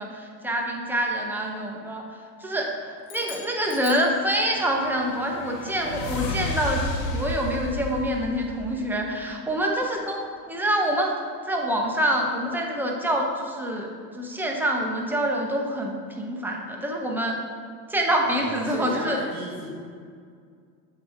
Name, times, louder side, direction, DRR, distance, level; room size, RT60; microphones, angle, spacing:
voice 1, 0.0-2.0 2.4-11.2 11.5-17.4 17.9-19.2, equal, 5° right, 0 dB, 0.6 m, -26 dB
sound 1, 3.0-4.8, left 9 dB, 45° left, 1.0 m, -43 dB
sound 2, 4.3-9.2, left 2 dB, 90° left, 1.0 m, -33 dB
voice 2, 18.2-19.7, right 2 dB, 70° right, -5 dB, 1.5 m, -35 dB
6.8 x 2.9 x 5.5 m, 2.1 s
hypercardioid pair, 105°, 48 cm